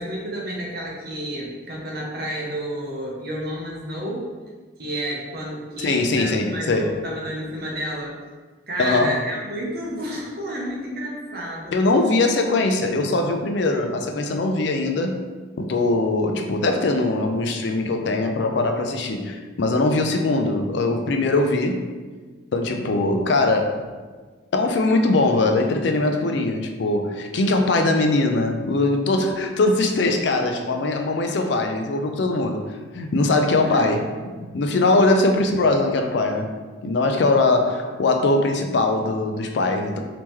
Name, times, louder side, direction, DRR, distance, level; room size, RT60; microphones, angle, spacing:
voice 1, 0.0-4.2 4.8-8.2 8.7-11.8 33.6-34.0, equal, 50° right, -2 dB, 0.8 m, -30 dB
voice 2, 5.8-6.9 8.8-9.2 11.7-15.3 15.6-21.9 22.5-23.8 24.5-32.6 32.9-34.0 34.4-36.5 36.8-40.0, left 2 dB, 65° left, 4 dB, 0.4 m, -21 dB
3.6 x 2.9 x 3.0 m, 1.4 s
head